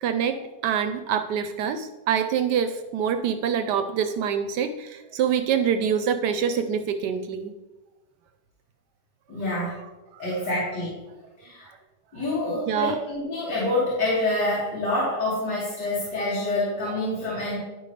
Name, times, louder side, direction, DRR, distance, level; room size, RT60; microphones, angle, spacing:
voice 1, 0.0-7.5 9.6-9.7 10.1-10.3 12.7-13.0, right 7 dB, 80° right, 8 dB, 1.2 m, -25 dB
voice 2, 9.3-9.8 10.2-11.0 11.4-11.7 12.1-17.6, left 2 dB, 80° left, -8 dB, 2.9 m, -27 dB
12.0 x 5.3 x 3.2 m, 1.1 s
omnidirectional pair, 1.8 m